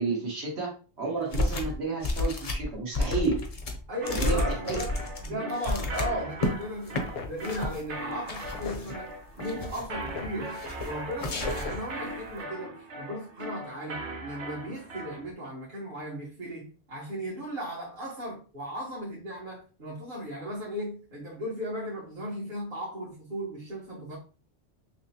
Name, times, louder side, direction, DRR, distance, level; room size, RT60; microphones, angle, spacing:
voice 1, 0.0-3.4 4.1-4.4 4.7-4.8 5.3-5.4, right 3 dB, 70° right, 1.6 m, -31 dB
sound 1, 1.3-1.8 2.0-6.5 6.9-7.0 7.4-7.8 8.3-9.0 9.4-10.0 10.5-10.9 11.2-11.8, left 2 dB, 40° left, 0.7 m, -31 dB
voice 2, 3.9-5.0 5.2-24.2, equal, 50° right, 1.3 m, -36 dB
sound 2, 4.0-15.3, right 1 dB, 90° right, 1.2 m, -40 dB
sound 3, 6.4-12.4, left 4 dB, 65° left, 0.8 m, -44 dB
6.1 x 2.1 x 2.8 m
omnidirectional pair, 1.1 m